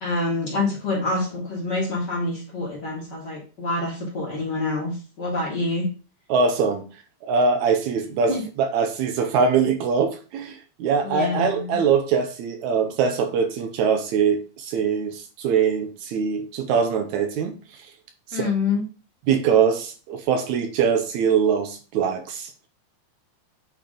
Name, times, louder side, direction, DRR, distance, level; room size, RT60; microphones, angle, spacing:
voice 1, 0.0-5.9 8.3-8.4 11.0-11.8 18.3-18.8, left 3 dB, 40° left, 2.4 m, -26 dB
voice 2, 6.3-6.9 7.2-17.6 18.3-18.5 19.3-22.5, right 6 dB, 80° right, 2.0 m, -22 dB
8.5 x 3.4 x 3.8 m
omnidirectional pair, 3.4 m